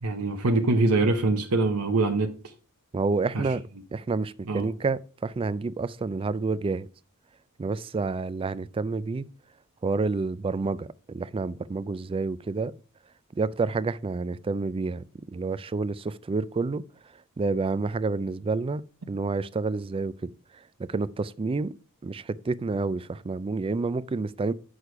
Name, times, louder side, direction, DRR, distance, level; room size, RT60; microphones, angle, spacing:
voice 1, 0.0-2.3 3.3-3.5 4.5-4.7, right 2 dB, 80° right, 0.9 m, -24 dB
voice 2, 2.9-3.6 3.9-6.9 7.6-9.3 9.8-12.7 13.3-16.8 17.4-18.8 19.1-21.7 22.0-24.5, right 3 dB, 25° right, 0.3 m, -29 dB
8.3 x 6.4 x 4.7 m
head